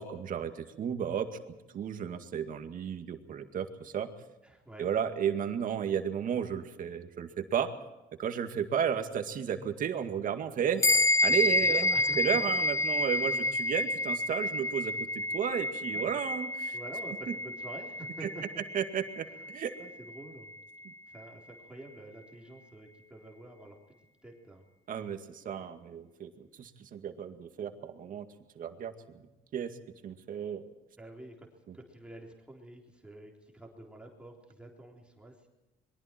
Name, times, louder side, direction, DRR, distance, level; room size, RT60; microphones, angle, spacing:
voice 1, 0.0-4.1 4.8-7.7 8.2-10.8 11.2-11.9 12.2-16.8 17.3-17.4 18.2-18.3 18.7-19.7 20.9-21.0 24.9-28.3 28.6-29.3 29.5-29.7 30.0-30.6 31.7-31.8, right 8 dB, 55° right, 6 dB, 2.1 m, -33 dB
voice 2, 4.4-4.9 10.8-11.1 11.6-12.2 13.0-13.4 15.9-16.2 16.7-18.4 19.3-19.5 19.8-20.5 21.1-23.8 24.2-24.6 31.0-31.5 31.7-35.5, right 2 dB, 5° right, -1 dB, 3.6 m, -48 dB
sound 1, 10.8-20.5, left 2 dB, 20° left, 0.9 m, -30 dB
26.5 x 22.0 x 4.5 m, 1.0 s
cardioid pair, 110°, 17 cm